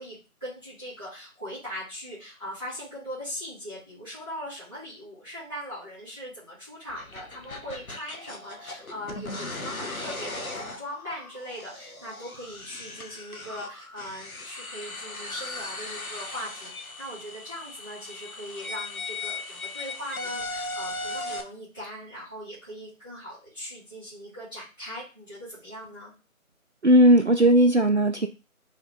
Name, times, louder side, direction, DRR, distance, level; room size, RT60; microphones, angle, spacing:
voice 1, 0.0-26.1, equal, 5° left, -16 dB, 2.5 m, -40 dB
sound 1, 6.9-21.4, left 2 dB, 75° left, 1.3 m, -38 dB
voice 2, 26.8-28.3, right 1 dB, 55° right, 5 dB, 0.5 m, -17 dB
3.9 x 3.6 x 3.7 m, 0.31 s
figure-of-eight pair, 175°, 42 cm